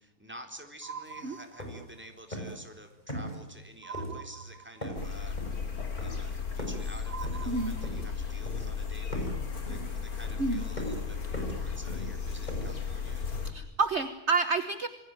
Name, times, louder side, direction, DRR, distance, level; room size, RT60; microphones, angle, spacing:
voice 1, 0.0-5.4 6.0-9.4 9.7-13.3, equal, 5° right, 5 dB, 4.0 m, -50 dB
sound 1, 0.8-2.1 3.8-5.1 7.1-8.3, right 6 dB, 80° right, 2.2 m, -44 dB
sound 2, 1.0-1.1 1.4-2.0 2.3-2.7 3.1-3.6 3.9-4.5 4.8-6.9 7.2-8.2 8.5-8.8 9.1-13.1, equal, 25° left, 6.6 m, -39 dB
sound 3, 4.9-13.5, left 6 dB, 70° left, 3.5 m, -35 dB
voice 2, 7.5-7.8 10.4-10.6 13.4-14.9, right 4 dB, 45° right, 10 dB, 1.5 m, -29 dB
28.0 x 21.0 x 9.1 m, 0.82 s
omnidirectional pair, 1.6 m